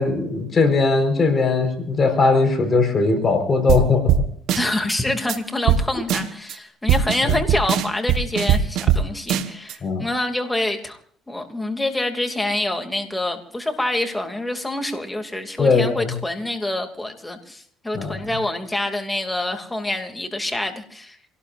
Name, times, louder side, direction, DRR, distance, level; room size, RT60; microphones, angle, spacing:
voice 1, 0.0-4.3 7.2-7.4 9.8-10.0 15.6-16.1 17.9-18.1, left 4 dB, 35° left, 5 dB, 4.7 m, -19 dB
sound 1, 3.7-3.8 4.1-4.2 4.5-4.9 5.3-5.4 5.7-5.8 6.1-6.5 6.9-9.0 9.3-9.7, right 9 dB, 75° right, 1.3 m, -19 dB
voice 2, 4.5-11.0 11.3-21.2, left 1 dB, 10° left, 5 dB, 2.6 m, -26 dB
28.0 x 18.5 x 2.6 m, 0.62 s
cardioid pair, 95°, 0 cm